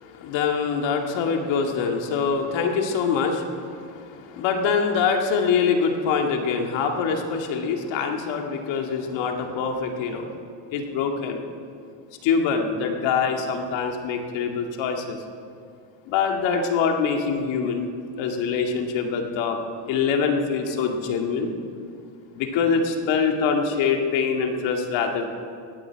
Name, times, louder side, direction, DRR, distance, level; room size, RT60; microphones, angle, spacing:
voice 1, 0.0-10.3 10.7-11.4 12.2-15.2 16.1-17.9 18.2-19.6 19.9-21.5 22.3-25.3, left 5 dB, 70° left, 3 dB, 2.2 m, -24 dB
19.5 x 15.0 x 4.7 m, 2.3 s
cardioid pair, 120°, 46 cm